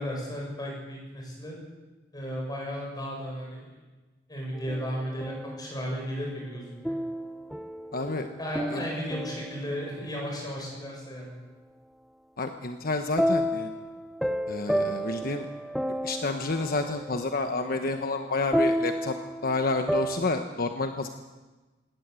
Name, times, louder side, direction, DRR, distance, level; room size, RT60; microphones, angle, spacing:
voice 1, 0.0-1.6 2.1-3.7 4.3-6.9 8.4-11.3, equal, 20° left, -1 dB, 7.6 m, -34 dB
sound 1, 4.5-5.8 6.8-10.1 13.2-20.2, equal, ahead, 0.6 m, -31 dB
voice 2, 7.9-8.3 8.7-8.9 12.4-13.7 14.5-15.5 16.0-19.2 19.4-21.1, left 3 dB, 50° left, 6 dB, 1.2 m, -29 dB
20.5 x 18.0 x 8.3 m, 1.2 s
head